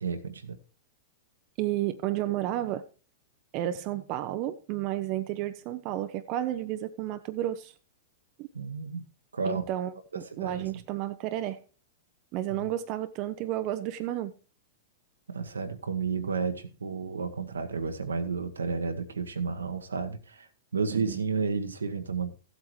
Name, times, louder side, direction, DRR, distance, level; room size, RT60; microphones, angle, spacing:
voice 1, 0.0-0.6 8.5-9.0 9.3-9.7 10.1-10.8 12.5-12.7 15.3-20.5 20.7-22.4, right 5 dB, 80° right, 1.1 m, -32 dB
voice 2, 1.6-2.8 3.5-7.7 8.4-8.5 9.4-11.6 12.3-14.3 20.9-21.1, right 13 dB, 45° right, 0.6 m, -32 dB
15.0 x 8.2 x 3.1 m
figure-of-eight pair, 105°, 0 cm